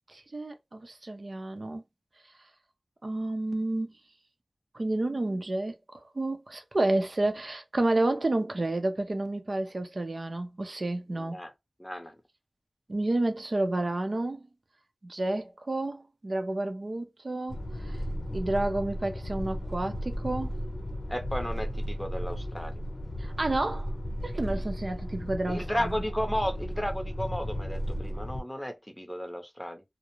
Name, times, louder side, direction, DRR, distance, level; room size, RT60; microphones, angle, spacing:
voice 1, 0.1-1.8 3.0-3.9 4.7-11.4 12.9-14.5 15.0-17.6 17.8-18.0 18.3-20.5 23.2-23.9 24.2-25.9, right 2 dB, 60° right, 0.6 m, -30 dB
voice 2, 11.1-11.5 11.8-12.1 21.1-22.7 25.5-29.8, equal, 10° left, 0.7 m, -34 dB
sound 1, 17.5-28.4, equal, 55° left, 0.7 m, -34 dB
2.4 x 2.0 x 3.0 m
wide cardioid pair, 60°, 0 cm